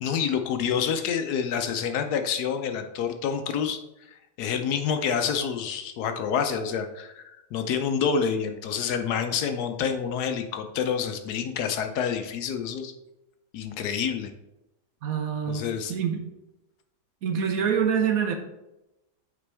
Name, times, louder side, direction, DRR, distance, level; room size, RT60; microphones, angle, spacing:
voice 1, 0.0-3.8 4.4-12.9 13.5-14.3 15.5-16.0, left 7 dB, 70° left, 7 dB, 1.1 m, -28 dB
voice 2, 15.0-16.2 17.2-18.3, right 7 dB, 65° right, 5 dB, 1.1 m, -26 dB
8.3 x 5.1 x 3.4 m, 0.93 s
omnidirectional pair, 1.8 m